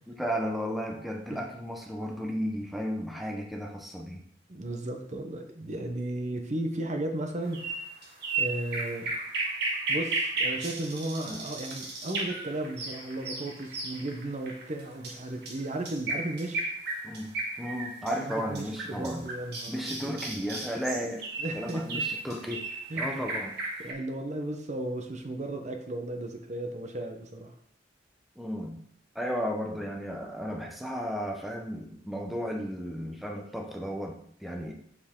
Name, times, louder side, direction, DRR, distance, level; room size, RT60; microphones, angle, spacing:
voice 1, 0.1-4.2 11.2-11.4 17.0-19.3 19.7-21.3 21.5-22.6 23.0-23.5 23.8-23.9 28.4-28.8 29.1-34.7, equal, ahead, 0 dB, 0.8 m, -34 dB
voice 2, 4.5-7.7 8.4-9.1 9.9-16.7 18.1-20.2 21.4-22.0 22.9-23.3 23.8-27.5, right 1 dB, 40° right, 4 dB, 0.9 m, -35 dB
sound 1, 7.5-23.9, right 3 dB, 60° right, 1.7 m, -34 dB
7.0 x 7.0 x 3.7 m, 0.67 s
head